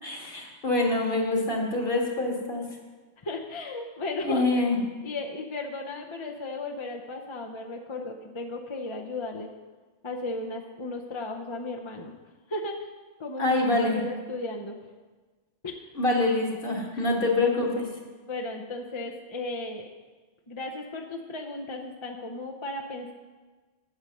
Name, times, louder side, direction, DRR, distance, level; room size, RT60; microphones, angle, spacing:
voice 1, 0.0-2.6 4.2-4.8 13.4-14.0 16.0-17.9, left 2 dB, 50° left, 0 dB, 1.9 m, -25 dB
voice 2, 3.2-4.7 5.0-9.5 10.0-12.1 12.5-12.9 13.2-13.4 13.9-14.8 15.6-15.8 16.9-17.0 18.3-19.8 20.5-23.1, left 2 dB, 30° left, 1 dB, 0.7 m, -35 dB
8.4 x 8.0 x 6.4 m, 1.3 s
omnidirectional pair, 1.2 m